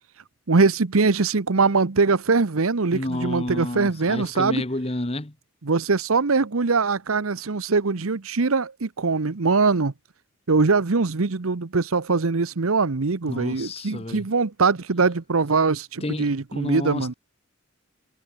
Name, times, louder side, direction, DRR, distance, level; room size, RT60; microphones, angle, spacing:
voice 1, 0.5-4.6 5.7-9.9 10.5-17.1, right 4 dB, 80° right, 0.9 m, -22 dB
voice 2, 2.9-5.3 13.2-14.3 16.0-17.1, left 1 dB, 30° left, 1.4 m, -30 dB
head